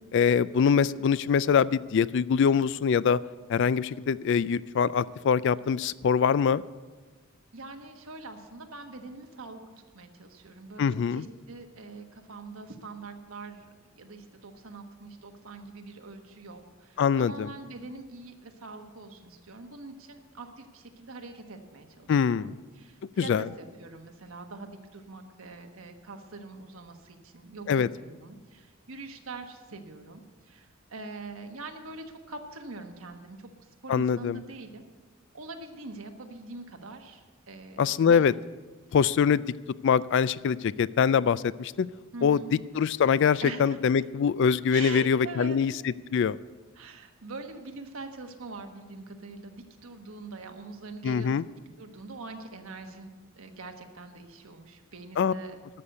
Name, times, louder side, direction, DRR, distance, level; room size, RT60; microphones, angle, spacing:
voice 1, 0.1-3.2 3.5-6.6 10.8-11.2 17.0-17.5 22.1-22.5 23.2-23.4 27.7-27.9 33.9-34.4 37.8-38.3 38.9-39.4 39.8-41.9 42.2-42.4 42.8-45.7 46.1-46.4 51.0-51.4 55.2-55.3, left 6 dB, 60° left, 18 dB, 0.3 m, -23 dB
voice 2, 7.5-9.6 9.9-33.5 33.8-34.8 35.3-38.3 42.1-42.5 43.4-43.8 44.7-45.6 46.7-51.3 51.8-55.6, right 3 dB, 85° right, 5 dB, 1.3 m, -43 dB
12.5 x 6.7 x 7.8 m, 1.3 s
head